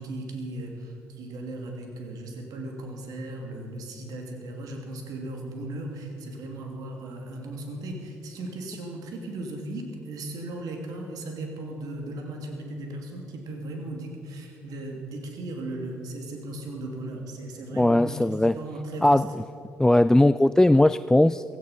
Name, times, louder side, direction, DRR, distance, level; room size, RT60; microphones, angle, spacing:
voice 1, 0.0-19.2, right 2 dB, 60° right, 2 dB, 2.7 m, -37 dB
voice 2, 17.8-18.6 19.0-19.3 19.8-21.4, left 1 dB, 10° left, 14 dB, 0.3 m, -19 dB
16.0 x 13.5 x 5.6 m, 2.6 s
hypercardioid pair, 50°, 7 cm